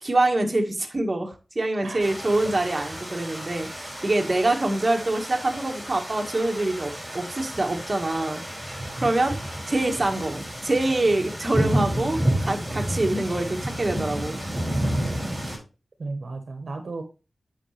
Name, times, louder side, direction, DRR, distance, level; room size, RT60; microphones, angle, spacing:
voice 1, 0.0-8.4 9.0-9.3 9.7-14.4, right 2 dB, 30° right, 2 dB, 1.7 m, -25 dB
sound 1, 2.0-15.6, right 1 dB, 10° right, 4.9 m, -30 dB
voice 2, 16.0-17.0, right 3 dB, 65° right, 6 dB, 1.2 m, -35 dB
9.0 x 6.0 x 3.3 m, 0.31 s
wide cardioid pair, 115°, 0 cm